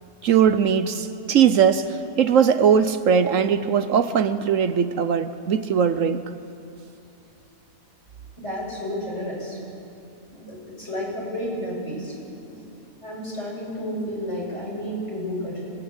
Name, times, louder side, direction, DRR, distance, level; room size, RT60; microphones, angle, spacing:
voice 1, 0.2-6.2, right 7 dB, 65° right, 11 dB, 1.1 m, -20 dB
voice 2, 8.4-9.6 10.3-12.1 12.4-12.7 13.0-15.7, equal, 50° left, -4 dB, 7.7 m, -31 dB
25.5 x 20.0 x 8.1 m, 2.6 s
omnidirectional pair, 1.5 m